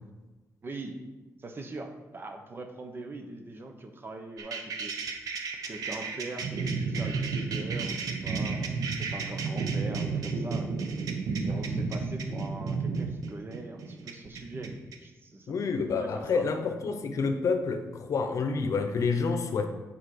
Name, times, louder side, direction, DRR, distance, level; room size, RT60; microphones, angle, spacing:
voice 1, 0.6-1.0 1.4-4.9 5.7-10.7 11.4-15.6 15.9-16.5, right 2 dB, 40° right, 5 dB, 1.1 m, -42 dB
sound 1, 4.4-15.0, right 4 dB, 85° right, 0.9 m, -32 dB
voice 2, 15.5-19.7, left 4 dB, 60° left, 7 dB, 0.8 m, -28 dB
8.2 x 5.3 x 5.0 m, 1.2 s
cardioid pair, 95°, 6 cm